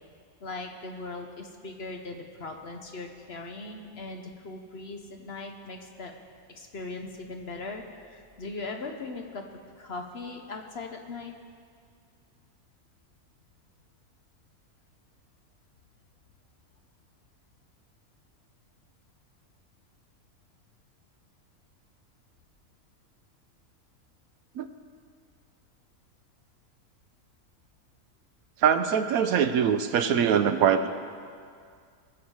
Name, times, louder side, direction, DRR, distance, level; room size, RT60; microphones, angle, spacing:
voice 1, 0.4-6.1 6.5-9.4 9.8-11.3, left 3 dB, 50° left, 4 dB, 0.9 m, -39 dB
voice 2, 28.6-30.9, right 8 dB, 75° right, 10 dB, 1.0 m, -23 dB
20.0 x 7.2 x 4.7 m, 2.2 s
omnidirectional pair, 1.6 m